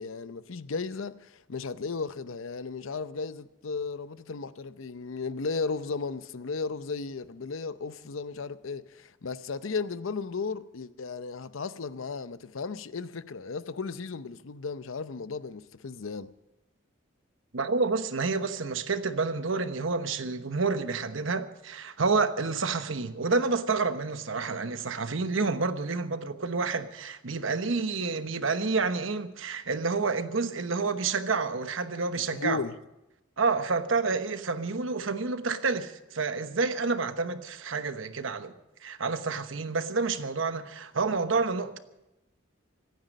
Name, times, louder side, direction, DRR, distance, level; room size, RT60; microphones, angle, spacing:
voice 1, 0.0-16.3 32.1-32.8, left 4 dB, 85° left, 0.7 m, -35 dB
voice 2, 17.5-32.6 33.4-38.5 38.8-41.8, right 4 dB, 80° right, 1.0 m, -29 dB
25.0 x 9.5 x 5.3 m
head